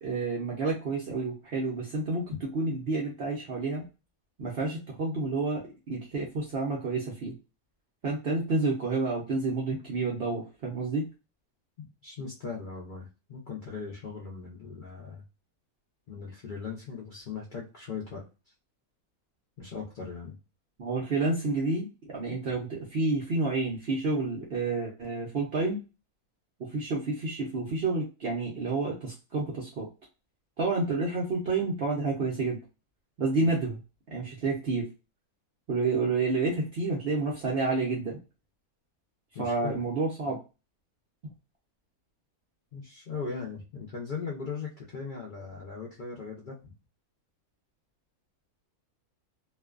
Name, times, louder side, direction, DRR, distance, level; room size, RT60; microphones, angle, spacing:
voice 1, 0.0-2.2 2.5-3.8 4.4-7.3 8.0-11.0 20.8-25.8 26.6-29.9 30.6-32.6 33.2-33.8 34.1-34.9 35.7-38.2 39.4-40.4, right 3 dB, 65° right, -2 dB, 0.6 m, -29 dB
voice 2, 11.8-15.2 16.1-18.2 19.6-20.3 39.3-39.8 42.7-46.7, left 5 dB, 70° left, -3 dB, 0.4 m, -39 dB
2.5 x 2.2 x 2.3 m, 0.30 s
omnidirectional pair, 1.6 m